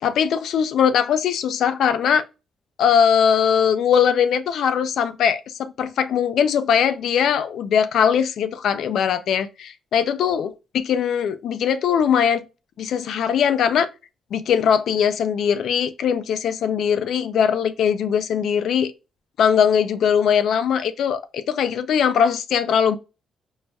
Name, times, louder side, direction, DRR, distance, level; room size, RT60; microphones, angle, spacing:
voice 1, 0.0-2.2 2.8-10.5 10.9-12.4 12.8-13.9 14.3-18.9 19.4-23.0, left 8 dB, 75° left, 0.3 m, -20 dB
4.7 x 2.2 x 2.6 m
cardioid pair, 115°, 0 cm